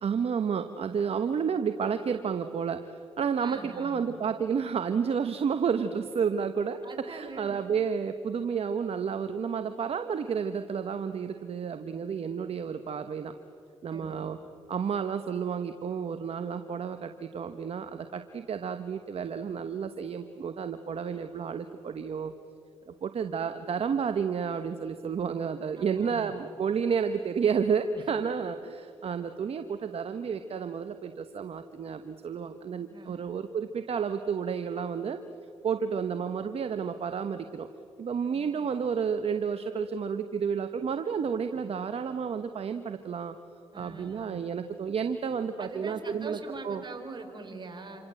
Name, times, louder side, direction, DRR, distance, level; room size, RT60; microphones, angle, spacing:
voice 1, 0.0-6.8 7.1-13.3 13.8-14.4 14.7-22.3 22.9-35.2 35.6-37.7 38.0-43.4 43.7-46.4 46.6-46.8, right 6 dB, 60° right, 9 dB, 1.2 m, -31 dB
voice 2, 3.4-4.2 6.8-7.6 13.9-14.3 25.8-26.3 27.9-28.0 32.9-33.3 43.7-44.4 45.6-48.0, right 3 dB, 40° right, 5 dB, 4.7 m, -43 dB
28.0 x 25.5 x 7.8 m, 2.7 s
supercardioid pair, 60°, 11 cm